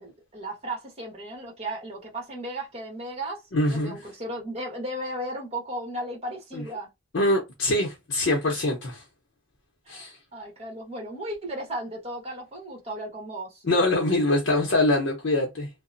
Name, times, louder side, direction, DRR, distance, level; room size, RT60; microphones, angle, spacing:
voice 1, 0.0-6.9 9.9-13.6, right 1 dB, 30° right, 1.1 m, -35 dB
voice 2, 3.5-4.1 6.5-6.6 7.1-9.0 9.9-10.2 13.6-15.7, left 1 dB, 70° left, 0.6 m, -24 dB
2.8 x 2.0 x 2.5 m
head